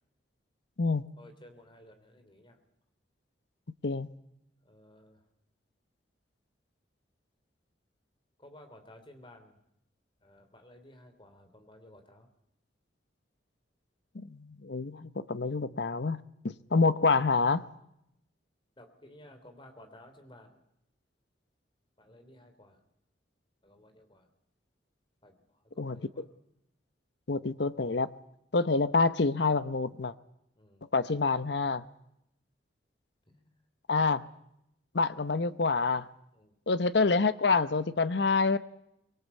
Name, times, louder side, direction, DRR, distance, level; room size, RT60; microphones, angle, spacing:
voice 1, 1.2-2.6 4.6-5.2 8.4-9.6 10.2-12.3 18.8-20.6 22.0-22.8 23.6-24.3 25.2-26.3 30.6-30.9 33.3-33.4 36.3-36.5, left 1 dB, 25° left, 6 dB, 3.2 m, -55 dB
voice 2, 14.1-17.6 25.8-26.2 27.3-28.1 28.5-30.1 30.9-31.8 33.9-34.3 34.9-36.1 36.7-38.6, left 4 dB, 65° left, 14 dB, 0.8 m, -27 dB
24.0 x 20.5 x 8.4 m, 0.79 s
head